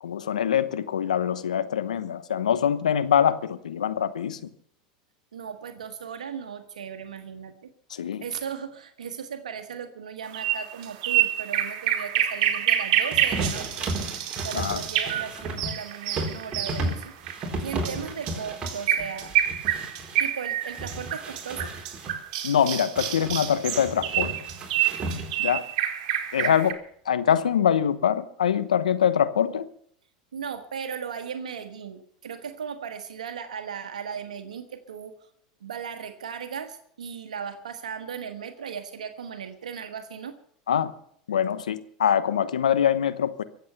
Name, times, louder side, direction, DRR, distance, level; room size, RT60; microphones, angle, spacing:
voice 1, 0.0-4.5 7.9-8.2 14.5-14.8 22.4-24.3 25.4-25.6 26.3-26.8 27.0-29.7 40.7-40.9 41.3-43.4, left 8 dB, 90° left, 13 dB, 1.0 m, -24 dB
voice 2, 5.3-7.7 8.2-13.8 14.4-17.1 17.6-19.3 20.2-21.7 30.3-35.3 35.6-40.4, right 7 dB, 90° right, 8 dB, 1.3 m, -37 dB
sound 1, 10.3-26.7, right 11 dB, 65° right, 2.2 m, -28 dB
sound 2, 13.1-20.2 20.6-22.2 23.0-25.5, right 2 dB, 25° right, 4.3 m, -34 dB
23.0 x 8.0 x 6.8 m, 0.65 s
hypercardioid pair, 95°, 4 cm